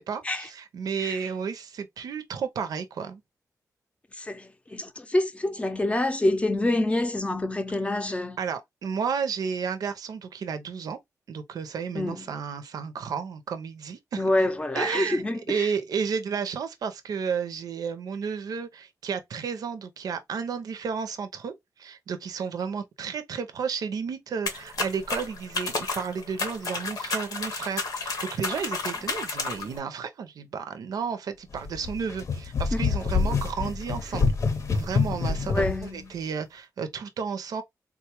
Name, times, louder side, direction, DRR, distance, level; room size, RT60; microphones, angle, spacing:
voice 1, 0.0-3.2 8.0-11.0 11.3-14.2 14.8-21.5 21.8-34.3 34.7-37.6, right 6 dB, 85° right, 0.6 m, -32 dB
voice 2, 4.2-8.4 11.9-12.3 14.2-15.7 32.7-32.8 33.2-33.3 35.4-36.2, left 1 dB, 20° left, 0.5 m, -27 dB
sound 1, 24.5-29.8, left 3 dB, 90° left, 1.0 m, -32 dB
sound 2, 31.5-35.9, left 5 dB, 55° left, 0.7 m, -27 dB
3.6 x 2.3 x 2.9 m
wide cardioid pair, 110°, 6 cm